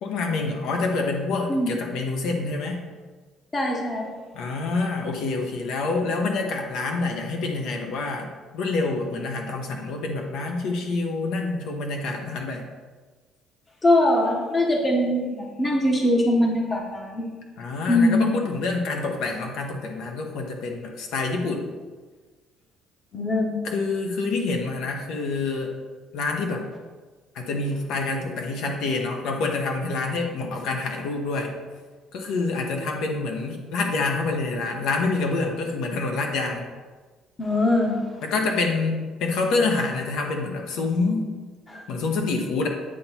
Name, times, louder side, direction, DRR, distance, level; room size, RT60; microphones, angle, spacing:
voice 1, 0.0-2.8 4.3-8.3 8.5-12.7 17.6-21.7 23.6-25.7 26.1-26.6 27.3-31.5 32.1-36.6 38.2-41.3 41.9-42.7, left 3 dB, 65° left, 2 dB, 1.0 m, -27 dB
voice 2, 3.5-4.1 13.8-17.3 17.9-18.3 23.1-23.6 37.4-38.0 41.7-41.8, left 1 dB, 20° left, 0 dB, 0.9 m, -22 dB
8.7 x 2.9 x 5.6 m, 1.4 s
cardioid pair, 160°, 0 cm